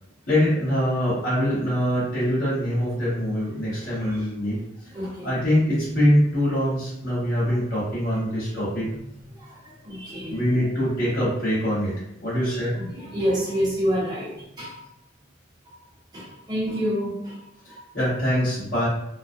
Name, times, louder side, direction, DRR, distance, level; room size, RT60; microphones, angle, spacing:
voice 1, 0.3-4.6 5.2-8.9 10.3-11.9 12.2-12.8 17.6-18.9, equal, 60° left, -10 dB, 1.5 m, -23 dB
voice 2, 3.7-4.3 4.9-5.3 9.3-10.4 12.7-14.8 15.6-15.7 16.1-17.8, equal, 20° right, -8 dB, 1.0 m, -29 dB
3.1 x 2.0 x 2.6 m, 0.83 s
head